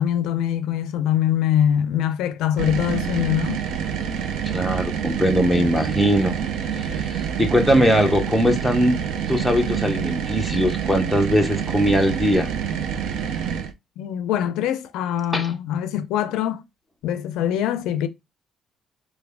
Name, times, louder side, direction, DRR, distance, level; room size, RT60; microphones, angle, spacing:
voice 1, 0.0-3.6 14.0-16.6 17.0-18.1, left 10 dB, 90° left, 0.4 m, -23 dB
sound 1, 2.6-13.7, right 8 dB, 80° right, 0.4 m, -27 dB
voice 2, 4.5-6.4 6.8-9.0 9.3-12.5 15.3-15.5, equal, ahead, 0.6 m, -20 dB
3.3 x 2.2 x 3.4 m
cardioid pair, 155°, 0 cm